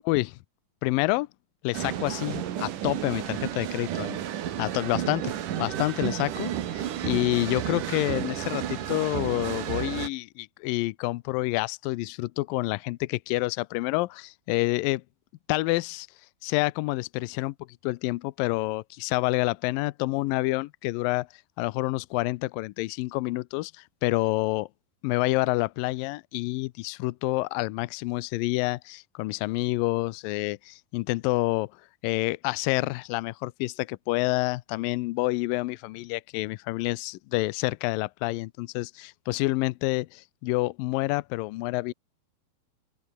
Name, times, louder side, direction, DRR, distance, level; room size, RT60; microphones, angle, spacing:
voice 1, 0.0-0.4 0.8-1.3 1.6-4.2 4.6-5.3 5.6-15.0 15.5-16.1 16.4-17.5 17.8-21.3 21.6-23.7 24.0-24.7 25.0-31.7 32.0-41.9, left 20 dB, 80° left, 2.2 m, -28 dB
sound 1, 1.7-10.1, right 11 dB, 65° right, 3.0 m, -32 dB
open air
omnidirectional pair, 4.3 m